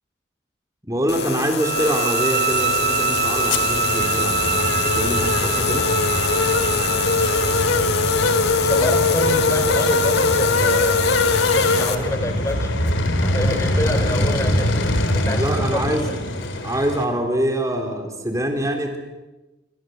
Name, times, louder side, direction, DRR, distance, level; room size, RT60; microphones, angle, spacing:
voice 1, 0.8-5.9 13.5-13.6 15.3-16.1 16.6-19.0, right 1 dB, 15° right, 3 dB, 3.7 m, -25 dB
sound 1, 1.1-12.0, left 7 dB, 55° left, 2.1 m, -26 dB
sound 2, 1.6-7.7, right 8 dB, 65° right, 1.5 m, -25 dB
sound 3, 2.5-17.1, left 2 dB, 90° left, 3.5 m, -22 dB
voice 2, 8.6-12.8 13.2-14.8 15.1-16.2, left 1 dB, 15° left, 7 dB, 3.6 m, -27 dB
26.5 x 25.5 x 7.9 m, 1.1 s
head